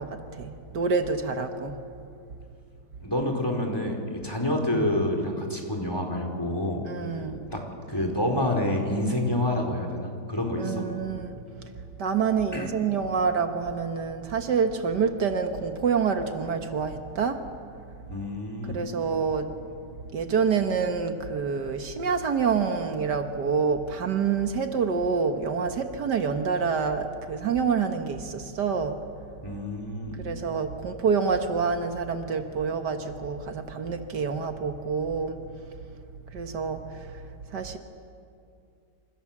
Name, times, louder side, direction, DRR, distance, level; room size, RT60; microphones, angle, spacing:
voice 1, 0.0-1.8 6.9-7.5 10.6-11.3 12.0-17.5 18.7-19.6 20.1-29.0 30.2-35.4 36.3-37.2 37.5-37.8, right 5 dB, 70° right, 7 dB, 1.9 m, -27 dB
voice 2, 3.0-6.9 7.5-10.8 12.5-12.7 18.1-18.8 29.4-30.2, left 1 dB, 15° left, 2 dB, 4.3 m, -28 dB
28.0 x 27.5 x 7.4 m, 2.5 s
omnidirectional pair, 1.9 m